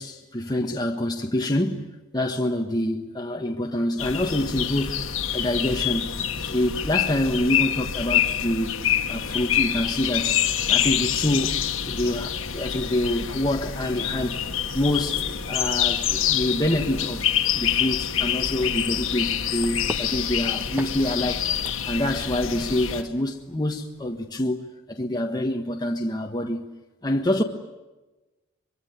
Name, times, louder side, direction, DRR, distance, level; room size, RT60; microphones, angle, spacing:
voice 1, 0.0-5.1 5.3-6.1 6.5-8.8 9.1-10.4 10.7-11.6 11.9-14.4 14.7-21.5 21.9-26.6 27.0-27.4, left 1 dB, 20° left, 1.5 m, -26 dB
sound 1, 4.0-23.0, left 9 dB, 75° left, 1.7 m, -26 dB
sound 2, 18.4-24.3, right 1 dB, 10° right, 1.3 m, -43 dB
24.5 x 24.0 x 9.6 m
head